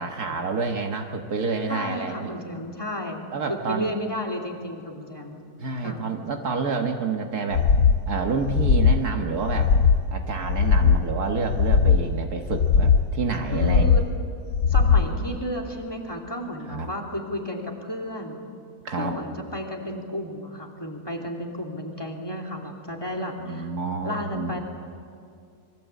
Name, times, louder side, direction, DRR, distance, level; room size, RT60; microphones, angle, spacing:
voice 1, 0.0-2.3 3.3-3.9 5.6-7.7 8.1-9.7 10.1-14.0 16.7-16.9 18.9-19.2 23.4-24.6, right 4 dB, 70° right, 3 dB, 2.0 m, -28 dB
voice 2, 1.7-5.4 5.8-6.0 13.5-14.0 14.7-18.4 18.9-23.7 24.0-24.6, left 1 dB, 15° left, 2 dB, 3.1 m, -33 dB
sound 1, 7.5-8.0 8.4-9.0 9.4-10.0 10.4-11.0 11.4-12.0 12.5-13.1 13.5-14.1 14.5-15.1, left 6 dB, 80° left, 1.6 m, -19 dB
26.5 x 23.0 x 8.3 m, 2.3 s
omnidirectional pair, 1.7 m